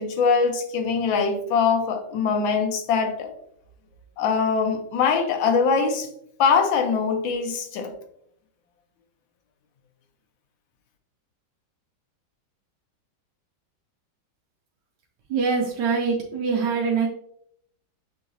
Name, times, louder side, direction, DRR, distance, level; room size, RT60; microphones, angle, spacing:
voice 1, 0.0-3.3 4.2-6.1 6.4-7.9, left 5 dB, 80° left, 4 dB, 1.5 m, -22 dB
voice 2, 15.3-17.1, right 5 dB, 70° right, 0 dB, 1.1 m, -24 dB
6.9 x 2.8 x 2.5 m, 0.70 s
omnidirectional pair, 2.1 m